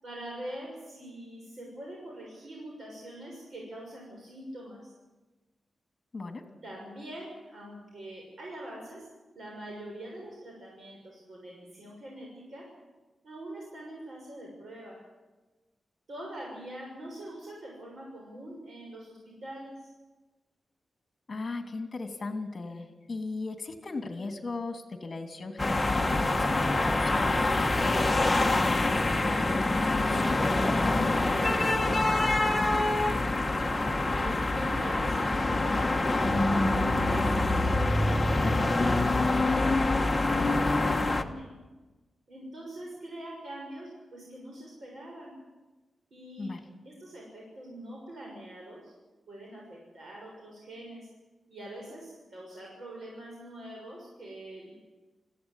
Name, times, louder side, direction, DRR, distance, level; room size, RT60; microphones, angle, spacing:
voice 1, 0.0-4.9 6.6-9.1 9.3-12.7 13.2-15.0 16.1-19.9 31.5-31.9 32.5-33.9 34.2-36.5 36.8-41.5 42.3-45.4 46.1-46.5 46.8-48.9 49.3-51.1 51.5-54.7, right 1 dB, 55° right, -2 dB, 6.5 m, -44 dB
voice 2, 6.1-6.5 21.3-30.6 46.4-46.6, left 3 dB, 35° left, 6 dB, 2.9 m, -37 dB
sound 1, 25.6-41.2, left 2 dB, 15° left, 1.2 m, -25 dB
21.0 x 16.0 x 9.9 m, 1.2 s
wide cardioid pair, 135°, 0 cm